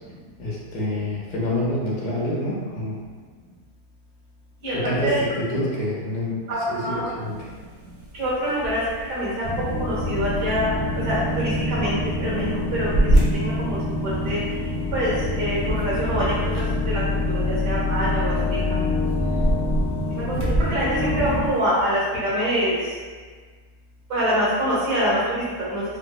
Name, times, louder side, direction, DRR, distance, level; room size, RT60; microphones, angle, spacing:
voice 1, 0.4-3.0 4.7-6.4 6.7-7.5, left 1 dB, 75° left, -6 dB, 1.4 m, -27 dB
voice 2, 6.5-7.0 8.2-8.8 9.1-9.3 9.8-10.7 11.0-12.9 13.3-13.8 14.2-14.4 14.9-17.0 17.3-18.8 20.1-22.8 24.1-25.8, equal, 85° right, -7 dB, 1.7 m, -25 dB
sound 1, 7.1-21.9, right 1 dB, 60° right, 0.7 m, -29 dB
sound 2, 9.4-21.5, left 2 dB, 50° left, 0.5 m, -26 dB
4.5 x 2.0 x 2.2 m, 1.5 s
omnidirectional pair, 1.7 m